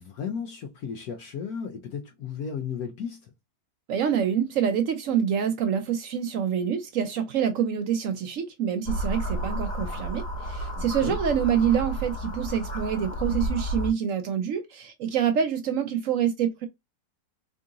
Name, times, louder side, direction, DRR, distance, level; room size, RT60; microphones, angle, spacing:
voice 1, 0.0-3.3 10.8-11.2, left 7 dB, 70° left, 1.0 m, -34 dB
voice 2, 3.9-16.7, right 8 dB, 75° right, 0.7 m, -26 dB
sound 1, 8.8-13.9, right 1 dB, 50° left, 2.0 m, -31 dB
3.7 x 2.5 x 3.7 m
omnidirectional pair, 1.9 m